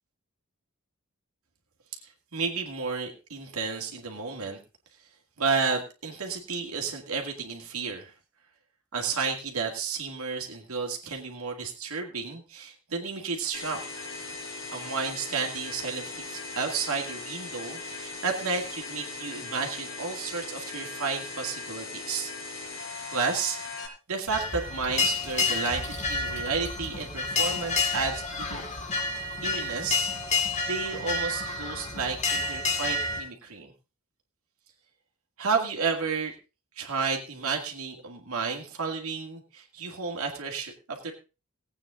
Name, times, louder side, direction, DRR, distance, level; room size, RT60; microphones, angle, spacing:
voice 1, 2.3-4.6 5.4-8.1 8.9-13.8 14.7-22.3 23.1-23.6 24.1-28.7 29.4-33.7 35.4-36.3 36.8-41.1, right 5 dB, 80° right, 1 dB, 2.2 m, -32 dB
sound 1, 13.5-23.9, left 3 dB, 85° left, 4.8 m, -39 dB
sound 2, 24.3-33.2, left 3 dB, 30° left, 2.1 m, -29 dB
17.5 x 8.8 x 3.8 m, 0.30 s
head